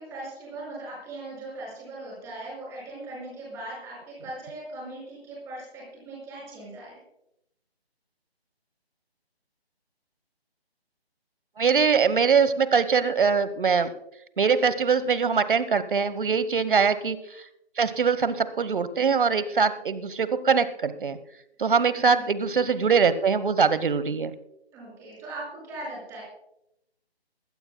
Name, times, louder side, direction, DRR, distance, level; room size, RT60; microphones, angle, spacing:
voice 1, 0.0-7.0 16.6-16.7 21.7-22.3 24.7-26.2, right 2 dB, 10° right, -4 dB, 5.5 m, -39 dB
voice 2, 11.6-13.9 14.4-17.4 17.8-21.2 21.6-24.3, right 5 dB, 55° right, 14 dB, 1.1 m, -22 dB
21.0 x 16.5 x 2.3 m, 0.81 s
figure-of-eight pair, 165°, 32 cm